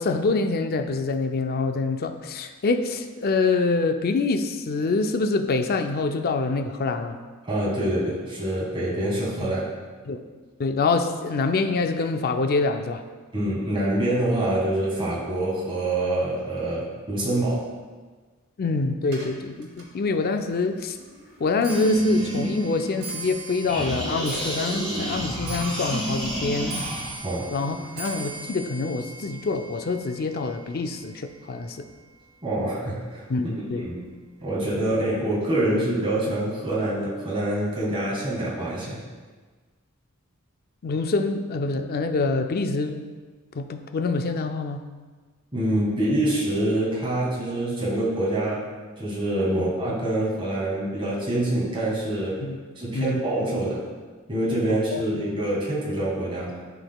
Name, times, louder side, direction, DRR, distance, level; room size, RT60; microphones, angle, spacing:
voice 1, 0.0-7.2 9.4-9.5 10.1-10.2 10.6-13.0 18.6-21.0 21.4-26.8 27.5-31.9 33.3-33.9 40.8-43.1 43.6-44.8 49.6-49.7 52.4-52.6 52.9-53.2 54.7-55.2, left 3 dB, 45° left, 6 dB, 0.4 m, -26 dB
voice 2, 7.4-9.7 13.3-17.6 27.2-27.5 32.4-33.2 33.8-34.0 34.4-39.0 45.5-48.7 48.9-52.5 52.7-53.8 54.3-56.5, right 1 dB, 25° right, -6 dB, 1.8 m, -25 dB
Clock, 19.0-32.4 32.7-33.2 34.0-34.1 34.4-34.8 35.0-35.1, right 3 dB, 75° right, 1.7 m, -40 dB
sound 1, 21.7-23.3 23.7-27.2, equal, 5° left, 1.9 m, -29 dB
11.5 x 4.0 x 2.3 m, 1.4 s
head